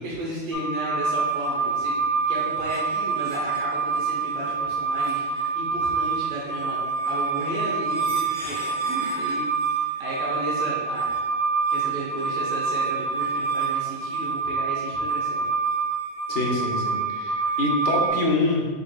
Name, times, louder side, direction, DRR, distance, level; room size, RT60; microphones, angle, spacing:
voice 1, 0.0-11.1 11.7-15.5, right 1 dB, 75° right, -5 dB, 1.2 m, -34 dB
sound 1, 0.5-18.1, right 4 dB, 35° right, 0.7 m, -26 dB
voice 2, 16.3-18.7, left 2 dB, 65° left, -2 dB, 1.2 m, -25 dB
4.9 x 4.4 x 2.2 m, 1.4 s
omnidirectional pair, 1.4 m